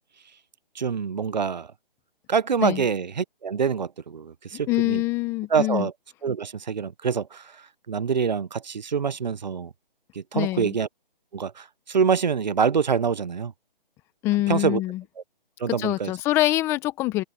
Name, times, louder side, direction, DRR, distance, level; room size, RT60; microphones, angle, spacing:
voice 1, 0.7-1.7 2.3-5.0 5.5-5.9 6.2-7.5 7.9-9.7 10.1-10.9 11.3-13.5 14.5-14.8 15.6-16.1, right 6 dB, 50° right, 1.3 m, -25 dB
voice 2, 4.7-5.9 10.3-10.8 14.2-15.0 15.7-17.2, left 17 dB, 10° left, 1.3 m, -25 dB
figure-of-eight pair, 160°, 29 cm